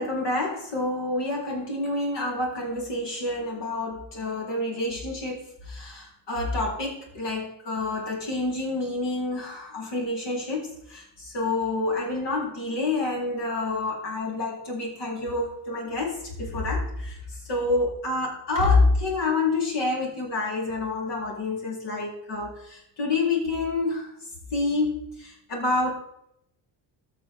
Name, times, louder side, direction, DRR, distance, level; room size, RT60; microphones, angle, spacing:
voice 1, 0.0-17.2 17.5-24.1 24.5-25.9, left 2 dB, 65° left, -2 dB, 3.7 m, -28 dB
14.0 x 6.1 x 3.5 m, 0.77 s
cardioid pair, 95°, 44 cm